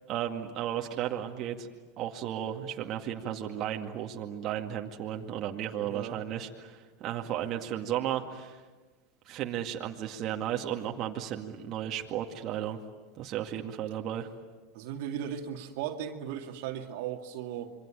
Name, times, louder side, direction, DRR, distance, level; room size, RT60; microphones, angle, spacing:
voice 1, 0.1-1.7 2.0-8.6 9.3-12.8 13.2-14.3, right 10 dB, 45° right, 2 dB, 2.1 m, -34 dB
voice 2, 5.8-6.2 14.7-17.7, right 9 dB, 65° right, 4 dB, 2.3 m, -37 dB
27.5 x 24.0 x 9.1 m, 1.3 s
hypercardioid pair, 100°, 0 cm